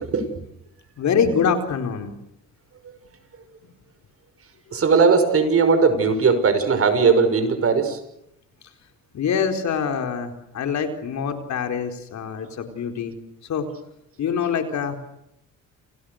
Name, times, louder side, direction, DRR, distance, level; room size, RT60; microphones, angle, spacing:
voice 1, 1.0-2.1 9.1-13.1 13.5-13.7 14.2-15.0, left 6 dB, 65° left, 6 dB, 4.4 m, -24 dB
voice 2, 4.7-8.0, right 5 dB, 50° right, 10 dB, 5.8 m, -18 dB
29.0 x 28.5 x 6.6 m, 0.78 s
cardioid pair, 90°, 30 cm